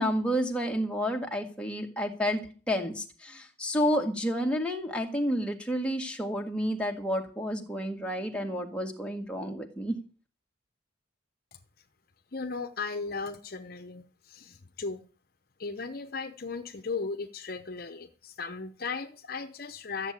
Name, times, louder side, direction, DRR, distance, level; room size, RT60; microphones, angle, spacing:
voice 1, 0.0-9.9, equal, 5° left, 1 dB, 2.0 m, -30 dB
voice 2, 12.3-15.1 15.6-20.1, left 4 dB, 50° left, 8 dB, 0.8 m, -36 dB
13.5 x 7.4 x 8.8 m, 0.40 s
head